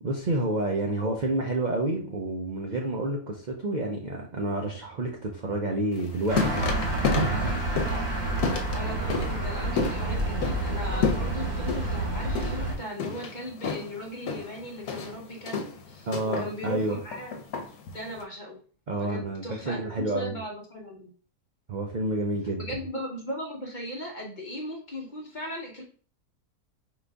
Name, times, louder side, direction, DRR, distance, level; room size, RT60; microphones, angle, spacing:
voice 1, 0.0-7.5 16.1-17.0 18.9-20.3 21.7-22.6, right 2 dB, 50° right, 0 dB, 0.5 m, -29 dB
sound 1, 5.9-18.2, left 5 dB, 80° left, 1.2 m, -32 dB
sound 2, 6.3-12.7, right 2 dB, 85° right, 2.0 m, -29 dB
voice 2, 8.7-17.4 17.9-18.6 19.0-21.1 22.6-25.8, equal, 35° left, -1 dB, 0.9 m, -38 dB
4.9 x 2.6 x 3.4 m, 0.40 s
omnidirectional pair, 1.6 m